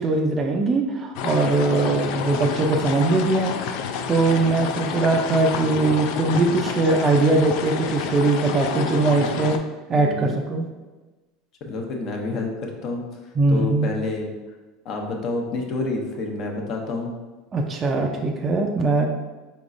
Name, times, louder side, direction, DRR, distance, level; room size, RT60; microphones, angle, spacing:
voice 1, 0.0-3.5 4.1-9.6 9.9-10.7 13.4-13.9 17.5-19.1, right 3 dB, 30° right, 1 dB, 0.4 m, -21 dB
sound 1, 1.2-9.6, left 7 dB, 65° left, 0.3 m, -29 dB
voice 2, 9.1-9.5 9.9-10.4 11.6-14.3 14.8-17.1, left 3 dB, 50° left, 2 dB, 0.8 m, -29 dB
4.1 x 3.6 x 2.5 m, 1.2 s
supercardioid pair, 110°, 0 cm